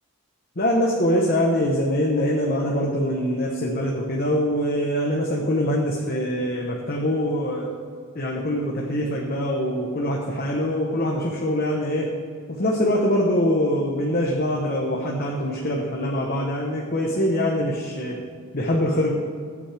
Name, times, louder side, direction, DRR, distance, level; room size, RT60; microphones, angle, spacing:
voice 1, 0.6-7.7 8.1-12.1 12.5-18.2 18.5-19.1, equal, 40° left, -2 dB, 1.1 m, -23 dB
16.5 x 8.7 x 3.5 m, 2.2 s
head